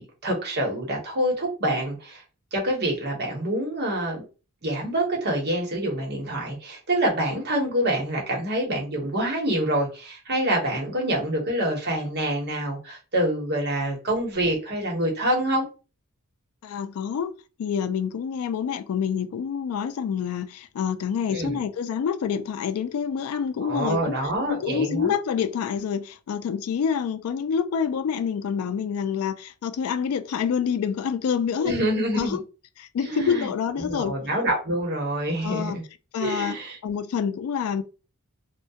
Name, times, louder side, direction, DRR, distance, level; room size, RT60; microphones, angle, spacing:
voice 1, 0.0-2.2 2.5-4.2 4.6-15.6 21.3-21.6 23.6-25.1 31.6-32.4 33.0-33.5 33.8-35.8 36.2-36.8, right 1 dB, 50° right, 0.9 m, -26 dB
voice 2, 16.6-17.3 17.6-24.1 24.5-31.7 32.1-32.4 32.8-34.2 35.4-35.8 36.1-36.6 36.8-37.8, left 7 dB, 80° left, 0.3 m, -27 dB
2.3 x 2.1 x 2.7 m
head